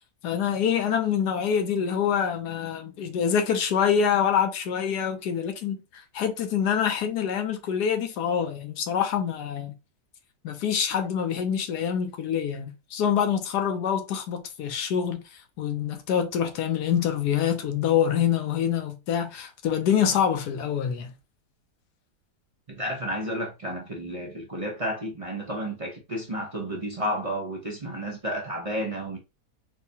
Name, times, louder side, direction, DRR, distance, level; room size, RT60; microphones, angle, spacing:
voice 1, 0.2-5.8 6.1-9.7 10.4-15.2 15.6-21.1, left 8 dB, 85° left, 1.3 m, -25 dB
voice 2, 22.7-29.2, equal, 35° right, 0.5 m, -31 dB
4.7 x 2.1 x 2.7 m
omnidirectional pair, 1.7 m